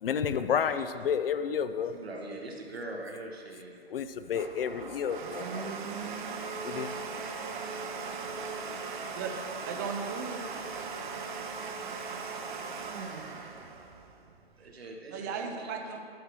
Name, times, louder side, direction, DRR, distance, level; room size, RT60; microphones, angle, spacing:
voice 1, 0.0-1.9 3.9-5.7 6.6-6.9, left 7 dB, 65° left, 11 dB, 0.5 m, -30 dB
voice 2, 1.9-3.9 14.6-15.7, right 2 dB, 75° right, 1 dB, 1.3 m, -42 dB
Domestic sounds home sounds, 4.0-14.7, right 4 dB, 50° right, 0.8 m, -38 dB
voice 3, 9.1-10.4 15.1-16.0, right 5 dB, 20° right, 4 dB, 0.4 m, -36 dB
11.5 x 6.0 x 3.0 m, 2.3 s
figure-of-eight pair, 120°, 31 cm